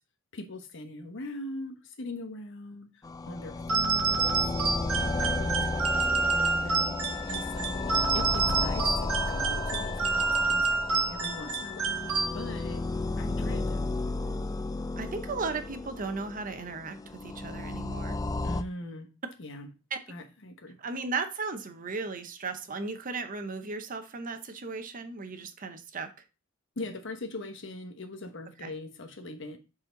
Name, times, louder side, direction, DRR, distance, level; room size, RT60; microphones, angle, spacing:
voice 1, 0.3-4.4 5.0-6.8 7.3-12.8 13.2-13.9 18.4-19.1 19.4-19.7 20.1-20.8 26.8-29.6, left 2 dB, 60° left, 1.1 m, -41 dB
sound 1, 3.0-18.6, left 3 dB, 15° left, 0.3 m, -33 dB
sound 2, 3.7-12.7, right 4 dB, 85° right, 1.2 m, -28 dB
voice 2, 15.0-18.2 19.9-20.0 20.8-26.1 28.6-28.7, right 4 dB, 40° right, 0.8 m, -36 dB
7.4 x 4.3 x 3.9 m
head